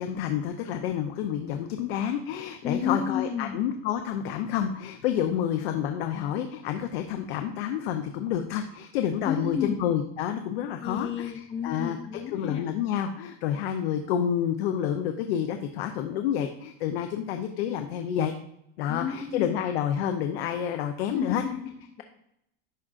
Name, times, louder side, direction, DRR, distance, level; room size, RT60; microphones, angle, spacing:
voice 1, 0.0-11.3 11.6-12.0 12.3-18.3 18.8-21.4, left 9 dB, 70° left, 6 dB, 0.6 m, -29 dB
voice 2, 2.6-3.6 9.2-9.8 10.6-12.7 18.9-19.6 21.1-22.0, left 7 dB, 20° left, 4 dB, 0.4 m, -32 dB
11.0 x 3.6 x 2.4 m, 0.78 s
supercardioid pair, 175°, 31 cm